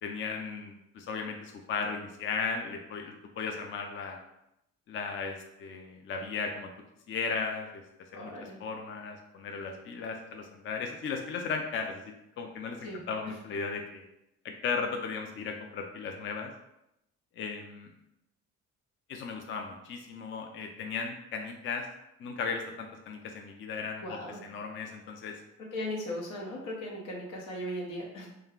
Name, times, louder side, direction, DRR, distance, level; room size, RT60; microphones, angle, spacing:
voice 1, 0.0-4.2 4.9-6.7 7.1-7.8 8.1-8.3 8.6-12.0 12.4-14.0 14.4-16.5 17.4-17.9 19.1-21.9 22.2-25.3, left 5 dB, 40° left, 3 dB, 0.4 m, -36 dB
voice 2, 8.1-8.6 12.8-13.4 24.0-24.4 25.7-28.3, left 1 dB, 85° left, -2 dB, 0.9 m, -38 dB
2.3 x 2.1 x 3.5 m, 0.84 s
cardioid pair, 90°, 30 cm